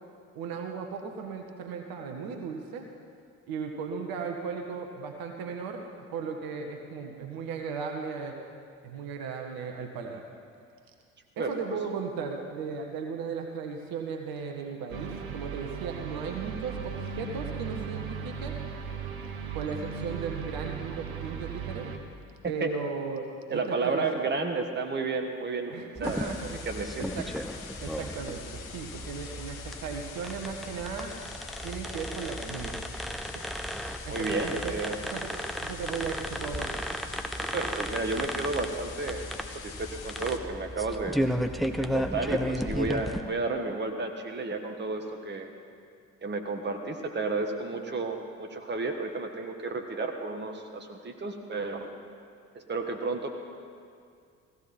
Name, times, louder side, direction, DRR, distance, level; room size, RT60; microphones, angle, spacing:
voice 1, 0.3-2.9 3.5-5.9 6.1-8.4 8.8-10.2 11.4-18.6 19.5-21.9 22.4-24.2 25.7-27.3 27.8-31.2 31.6-32.8 33.3-33.4 34.0-34.8 35.0-35.3 35.6-36.8, right 5 dB, 55° right, 3 dB, 1.5 m, -36 dB
voice 2, 11.4-11.8 22.6-22.7 23.5-26.3 26.6-27.1 34.1-35.0 37.4-39.3 39.6-41.2 41.8-45.5 46.2-51.9 52.5-53.3, right 3 dB, 25° right, 5 dB, 1.5 m, -32 dB
sound 1, 14.9-22.0, right 6 dB, 80° right, 1.2 m, -37 dB
sound 2, 25.9-43.2, equal, ahead, 0.8 m, -34 dB
sound 3, 26.0-40.4, left 6 dB, 80° left, 1.0 m, -45 dB
16.0 x 14.5 x 4.3 m, 2.3 s
figure-of-eight pair, 55°, 41 cm